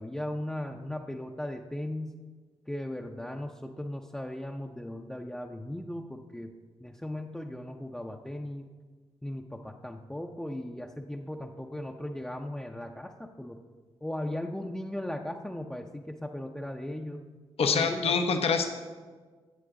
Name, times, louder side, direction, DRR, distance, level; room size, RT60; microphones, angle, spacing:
voice 1, 0.0-2.2 2.7-6.5 6.8-8.7 9.2-13.6 14.0-17.2 17.7-18.1, left 1 dB, 5° left, 1 dB, 0.6 m, -37 dB
voice 2, 17.6-18.7, left 5 dB, 70° left, 5 dB, 0.8 m, -25 dB
12.5 x 7.8 x 3.7 m, 1.4 s
supercardioid pair, 50°, 11 cm